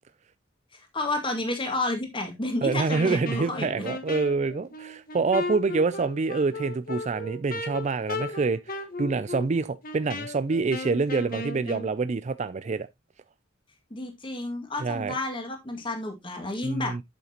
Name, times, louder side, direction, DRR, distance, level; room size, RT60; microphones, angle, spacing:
voice 1, 0.7-3.9 13.9-16.9, left 2 dB, 25° left, 2.0 m, -31 dB
voice 2, 2.6-12.9 14.8-15.2 16.6-17.0, right 4 dB, 35° right, 0.4 m, -26 dB
Wind instrument woodwind instrument, 2.9-11.9, left 2 dB, 45° left, 1.3 m, -35 dB
8.1 x 7.4 x 2.9 m
head